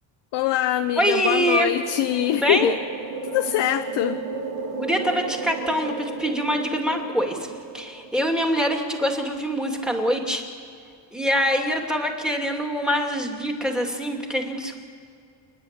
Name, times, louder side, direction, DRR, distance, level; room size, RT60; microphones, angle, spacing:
voice 1, 0.3-2.8 3.2-4.2, left 13 dB, 70° left, 8 dB, 0.8 m, -23 dB
sound 1, 0.8-8.5, right 4 dB, 70° right, 2.7 m, -34 dB
voice 2, 1.0-1.7 2.3-2.7 4.8-10.5 11.1-14.8, equal, ahead, 2 dB, 2.6 m, -24 dB
28.0 x 10.0 x 9.0 m, 2.4 s
cardioid pair, 115°, 44 cm